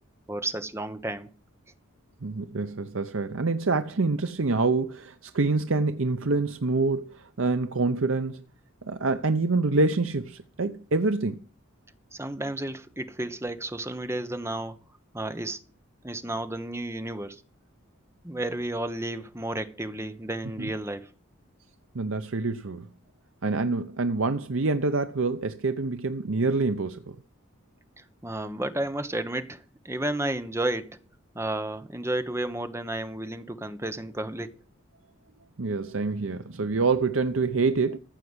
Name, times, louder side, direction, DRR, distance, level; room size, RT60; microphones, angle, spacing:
voice 1, 0.3-1.3 12.1-14.8 15.1-15.6 16.0-17.4 18.2-21.1 28.0-31.0 31.3-34.5, right 1 dB, 15° right, 1.1 m, -32 dB
voice 2, 2.2-8.4 8.8-11.4 20.6-20.7 21.9-22.9 23.4-27.2 35.6-38.0, right 3 dB, 75° right, 0.8 m, -26 dB
15.0 x 5.8 x 8.1 m
head